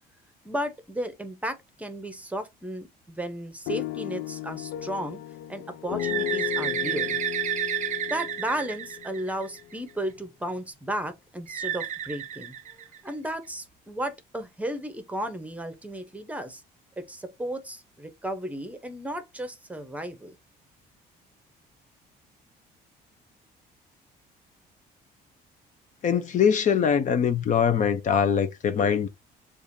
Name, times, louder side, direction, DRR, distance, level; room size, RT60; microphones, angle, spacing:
voice 1, 0.4-5.2 5.5-7.2 8.1-12.6 13.0-16.6 17.0-20.4, right 1 dB, 10° right, 0.8 m, -34 dB
sound 1, 3.7-9.7, left 13 dB, 85° left, 0.5 m, -34 dB
Bird, 6.0-9.7 11.5-13.3, right 10 dB, 45° right, 0.5 m, -31 dB
voice 2, 26.0-29.1, left 7 dB, 45° left, 0.6 m, -22 dB
6.8 x 2.5 x 2.7 m
cardioid pair, 110°, 17 cm